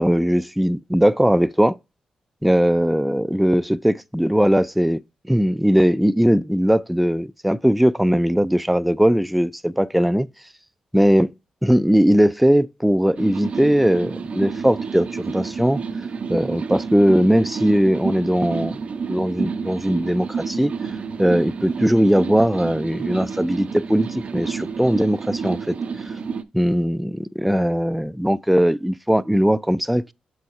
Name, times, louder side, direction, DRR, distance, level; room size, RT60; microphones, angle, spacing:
voice 1, 0.0-1.8 2.4-5.0 5.3-10.3 10.9-11.3 11.6-15.8 16.3-18.8 19.1-20.7 21.2-25.8 26.1-26.2 26.5-30.1, equal, ahead, 0.3 m, -19 dB
sound 1, 13.2-26.4, right 5 dB, 60° right, 0.5 m, -30 dB
6.3 x 4.2 x 4.7 m
cardioid pair, 60°, 2 cm